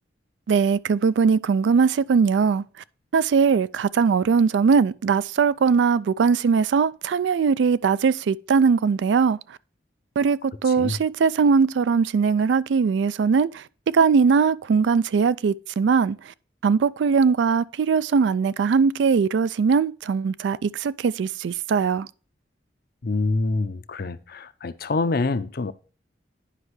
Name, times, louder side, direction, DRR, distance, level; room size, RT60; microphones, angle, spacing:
voice 1, 0.5-2.6 3.1-9.4 10.2-13.6 13.9-16.3 16.6-22.1, right 5 dB, 80° right, 0.3 m, -20 dB
voice 2, 23.0-25.7, left 3 dB, 55° left, 0.6 m, -26 dB
9.9 x 5.3 x 3.1 m
head